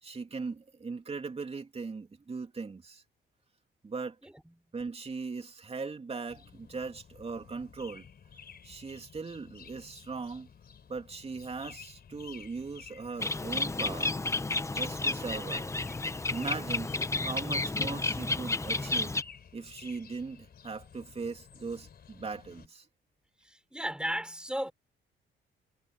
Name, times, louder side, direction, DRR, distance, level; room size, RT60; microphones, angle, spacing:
voice 1, 0.0-3.0 3.8-4.2 4.7-8.1 8.6-10.5 10.9-14.1 14.7-15.7 16.3-19.1 19.5-22.9, right 4 dB, 30° right, 2.9 m, -39 dB
sound 1, 6.3-22.7, left 7 dB, 50° left, 4.2 m, -53 dB
Bird, 13.2-19.2, left 2 dB, 15° left, 0.8 m, -31 dB
voice 2, 23.4-24.7, equal, 5° right, 4.9 m, -34 dB
cardioid pair, 90°, 20 cm